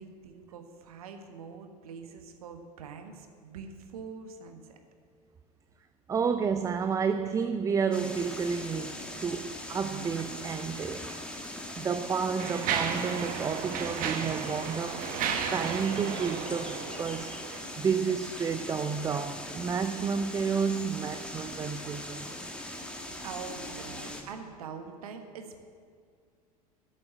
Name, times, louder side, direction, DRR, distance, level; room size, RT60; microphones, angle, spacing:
voice 1, 0.0-4.8 23.2-25.7, right 5 dB, 65° right, 6 dB, 1.4 m, -44 dB
voice 2, 6.1-11.1 11.8-15.1 15.5-22.3, right 6 dB, 15° right, 9 dB, 0.5 m, -31 dB
sound 1, 7.9-24.2, left 1 dB, 5° left, 1.7 m, -40 dB
Mechanisms, 11.0-11.2 11.9-17.6, right 7 dB, 45° right, 1.3 m, -34 dB
13.5 x 7.2 x 8.7 m, 2.2 s
figure-of-eight pair, 80°, 20 cm